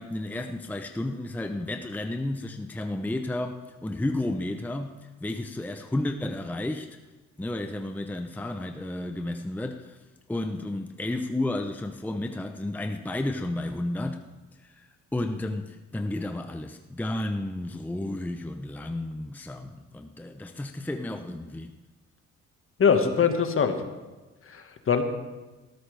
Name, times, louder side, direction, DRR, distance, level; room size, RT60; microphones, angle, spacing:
voice 1, 0.0-7.0 7.4-10.0 10.3-14.2 14.6-21.7, left 1 dB, 5° left, 6 dB, 0.7 m, -32 dB
voice 2, 22.8-23.8 24.5-25.0, left 6 dB, 45° left, 6 dB, 1.6 m, -22 dB
18.0 x 13.5 x 3.4 m, 1.2 s
cardioid pair, 90°, 30 cm